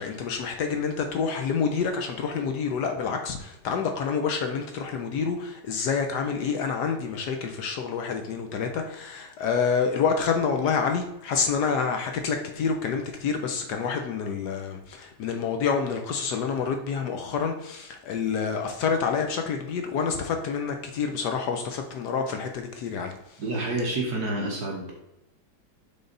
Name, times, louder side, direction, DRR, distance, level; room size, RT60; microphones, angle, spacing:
voice 1, 0.0-23.4, left 6 dB, 70° left, 5 dB, 1.1 m, -28 dB
voice 2, 23.4-24.9, right 2 dB, 55° right, -1 dB, 1.4 m, -28 dB
6.8 x 4.0 x 3.8 m, 0.90 s
omnidirectional pair, 2.2 m